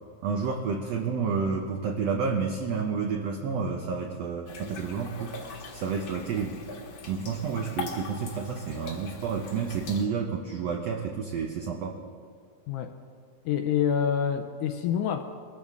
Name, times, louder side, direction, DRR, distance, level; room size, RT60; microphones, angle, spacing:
voice 1, 0.2-5.4 5.7-6.6 7.1-12.0, right 5 dB, 70° right, 1 dB, 1.6 m, -30 dB
sound 1, 4.5-10.1, left 3 dB, 50° left, 1.7 m, -41 dB
voice 2, 13.5-15.2, left 8 dB, 80° left, 7 dB, 1.9 m, -27 dB
22.5 x 14.0 x 3.6 m, 2.1 s
omnidirectional pair, 4.0 m